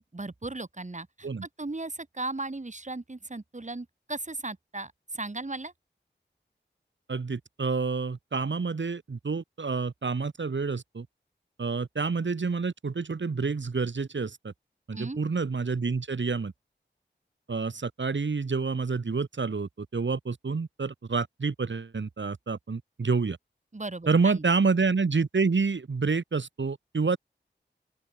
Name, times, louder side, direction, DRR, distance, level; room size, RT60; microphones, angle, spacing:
voice 1, 0.1-5.7 14.9-15.2 23.7-24.4, right 2 dB, 40° right, 5.2 m, -37 dB
voice 2, 7.1-11.1 11.6-14.5 14.9-16.5 17.5-23.4 24.1-27.2, right 4 dB, 80° right, 5.0 m, -28 dB
open air
wide cardioid pair, 55°, 19 cm